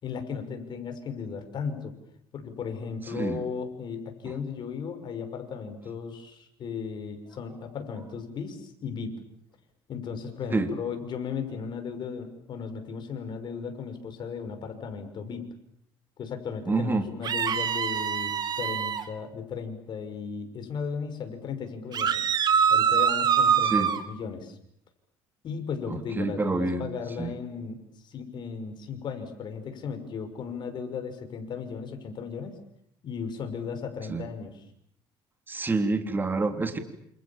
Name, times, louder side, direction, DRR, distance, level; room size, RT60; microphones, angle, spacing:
voice 1, 0.0-1.9 2.3-9.1 9.9-15.4 16.2-22.2 22.7-24.6 25.4-27.8 28.0-32.5 33.0-34.6, left 6 dB, 50° left, 7 dB, 6.1 m, -36 dB
voice 2, 16.7-17.0 23.7-23.9 25.9-26.8 27.2-27.3 34.1-34.2 35.5-36.8, right 3 dB, 20° right, 7 dB, 3.5 m, -27 dB
sound 1, 17.2-19.0 21.9-24.0, right 7 dB, 45° right, 2.5 m, -24 dB
28.5 x 28.0 x 7.4 m, 0.71 s
cardioid pair, 115°, 10 cm